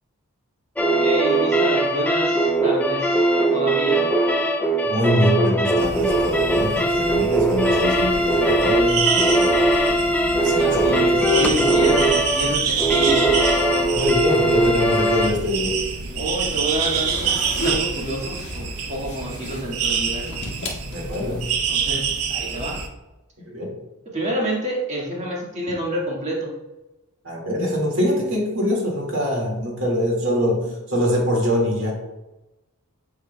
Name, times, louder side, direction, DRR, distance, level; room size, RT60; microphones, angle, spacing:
sound 1, 0.8-15.3, right 1 dB, 5° left, 0.4 m, -20 dB
voice 1, 0.9-3.3 3.5-4.1 10.6-13.3 16.1-20.4 21.7-22.8 24.1-26.5, right 1 dB, 30° right, -3 dB, 1.7 m, -28 dB
voice 2, 4.9-9.5 10.4-11.6 13.9-15.8 20.9-21.5 23.5-23.8 27.2-31.9, equal, 60° right, -1 dB, 2.0 m, -24 dB
sound 2, 5.8-22.9, right 6 dB, 80° right, 0.8 m, -27 dB
sound 3, 16.7-21.5, left 1 dB, 55° left, 1.7 m, -33 dB
8.8 x 4.8 x 2.2 m, 1.0 s
head